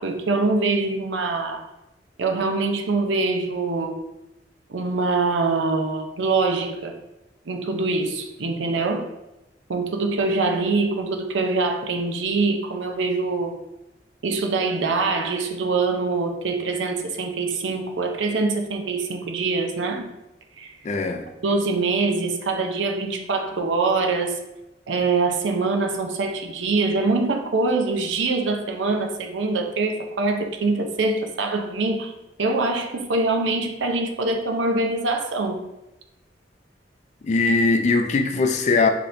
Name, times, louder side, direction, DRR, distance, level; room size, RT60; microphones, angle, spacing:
voice 1, 0.0-1.6 2.2-4.0 4.7-6.9 7.5-9.1 9.7-13.5 14.2-20.1 20.6-20.7 21.4-24.4 24.9-32.1 32.4-35.7, right 3 dB, 90° right, 4 dB, 0.6 m, -24 dB
voice 2, 20.8-21.3 37.2-38.9, left 3 dB, 40° left, 6 dB, 0.4 m, -20 dB
5.0 x 2.9 x 2.6 m, 0.95 s
head